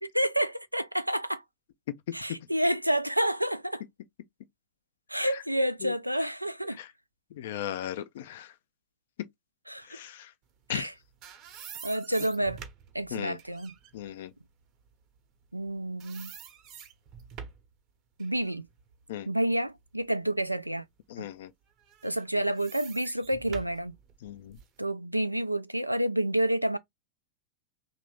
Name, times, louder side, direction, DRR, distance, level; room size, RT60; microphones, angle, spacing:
voice 1, 0.0-1.4 2.1-3.8 5.1-6.8 9.7-10.0 10.7-10.9 11.8-12.6 12.9-13.7 15.5-16.3 18.2-18.7 19.3-20.8 21.2-21.3 22.0-23.9 24.8-26.8, right 1 dB, 90° right, 0.3 m, -29 dB
voice 2, 7.3-8.5 9.8-10.3 10.7-10.9 13.1-13.4 13.9-14.3 19.1-19.3 21.1-21.5 24.2-24.6, left 11 dB, 55° left, 0.4 m, -37 dB
sound 1, 10.8-15.7 16.0-17.7 18.2-20.2 20.6-20.8 21.8-24.8, right 7 dB, 35° right, 0.8 m, -47 dB
2.9 x 2.5 x 3.2 m
figure-of-eight pair, 90°, 0 cm